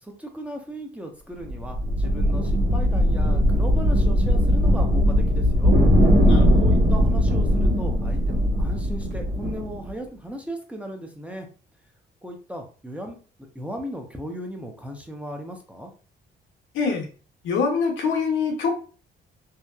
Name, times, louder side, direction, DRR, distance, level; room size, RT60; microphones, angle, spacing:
voice 1, 0.0-5.8 6.6-11.5 12.2-13.2 13.5-15.9, equal, 5° right, 2 dB, 0.6 m, -36 dB
sound 1, 1.4-9.9, equal, 65° right, 1.2 m, -19 dB
voice 2, 6.2-6.6 16.7-17.1 17.4-18.7, left 5 dB, 80° left, 2 dB, 0.8 m, -24 dB
2.8 x 2.1 x 2.3 m, 0.37 s
cardioid pair, 90°, 20 cm